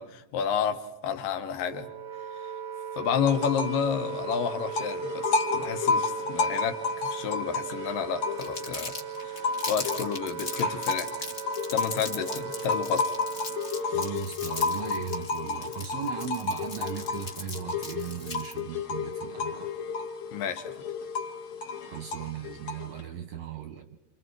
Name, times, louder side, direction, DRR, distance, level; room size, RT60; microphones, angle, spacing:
voice 1, 0.0-1.9 3.0-9.0 9.2-9.3 9.7-11.1 11.7-13.2 13.9-14.0 20.3-20.7, left 7 dB, 85° left, 8 dB, 2.8 m, -30 dB
Wind instrument woodwind instrument, 1.6-14.2, right 8 dB, 90° right, 0.9 m, -38 dB
sound 1, 3.2-3.8 4.1-8.8 9.2-23.0, left 4 dB, 60° left, 2.4 m, -32 dB
Crumpling crinkling, 8.4-18.6, left 3 dB, 25° left, 1.6 m, -39 dB
voice 2, 13.9-19.7 21.8-24.0, right 8 dB, 70° right, 6 dB, 1.6 m, -37 dB
29.5 x 26.5 x 4.7 m, 1.0 s
omnidirectional pair, 3.8 m